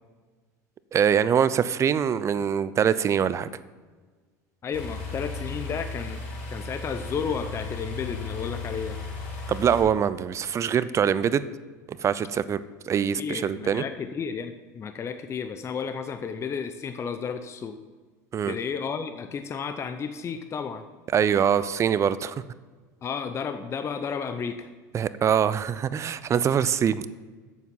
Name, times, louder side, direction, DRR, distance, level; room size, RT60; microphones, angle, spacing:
voice 1, 0.9-3.5 9.5-11.5 11.9-12.6 12.9-13.8 18.3-18.5 21.1-22.4 24.9-27.1, right 8 dB, 30° right, 16 dB, 0.4 m, -23 dB
voice 2, 4.6-6.2 6.5-9.0 13.2-17.8 18.4-20.9 23.0-24.7, left 6 dB, 30° left, 9 dB, 0.6 m, -32 dB
sound 1, 4.7-9.8, left 3 dB, 70° left, 2.9 m, -35 dB
8.2 x 7.2 x 5.4 m, 1.4 s
hypercardioid pair, 95°, 9 cm